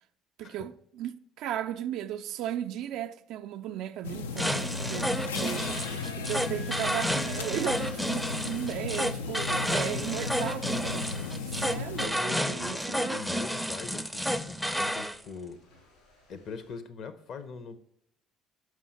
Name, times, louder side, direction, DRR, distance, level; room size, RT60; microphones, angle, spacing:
voice 1, 0.4-11.1 11.6-13.2, right 11 dB, 65° right, 0.3 m, -36 dB
sound 1, 4.0-12.1, left 4 dB, 90° left, 0.4 m, -36 dB
sound 2, 4.4-15.2, equal, ahead, 0.5 m, -31 dB
sound 3, 6.2-16.8, left 4 dB, 70° left, 3.1 m, -54 dB
voice 2, 11.4-15.6 16.3-17.8, left 5 dB, 55° left, 0.8 m, -42 dB
6.3 x 5.6 x 4.2 m
hypercardioid pair, 60°, 0 cm